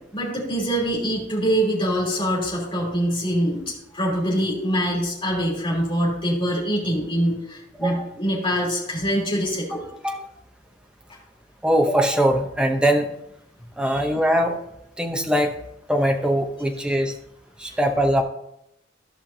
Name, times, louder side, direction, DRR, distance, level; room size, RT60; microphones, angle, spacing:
voice 1, 0.1-9.8 13.8-14.0, equal, 25° left, -5 dB, 3.2 m, -24 dB
voice 2, 11.6-13.1 13.8-14.6 15.0-15.5 15.9-17.1 17.6-18.2, equal, 5° right, 3 dB, 0.7 m, -21 dB
14.0 x 5.7 x 2.7 m, 0.80 s
head